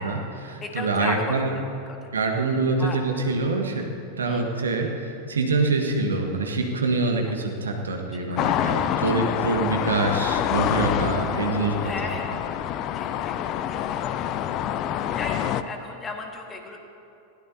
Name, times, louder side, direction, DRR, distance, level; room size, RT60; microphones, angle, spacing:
voice 1, 0.0-1.6 2.1-3.9 4.2-12.4, right 3 dB, 70° right, 2 dB, 1.5 m, -25 dB
voice 2, 0.6-1.4 2.0-2.1 2.8-3.0 4.2-4.4 8.1-9.2 10.8-11.1 11.8-12.4 12.9-13.3 13.7-14.3 15.1-16.8, left 3 dB, 20° left, 2 dB, 1.8 m, -35 dB
sound 1, 8.4-15.6, left 10 dB, 35° left, 0.5 m, -26 dB
20.0 x 16.5 x 2.8 m, 2.7 s
figure-of-eight pair, 90°, 0 cm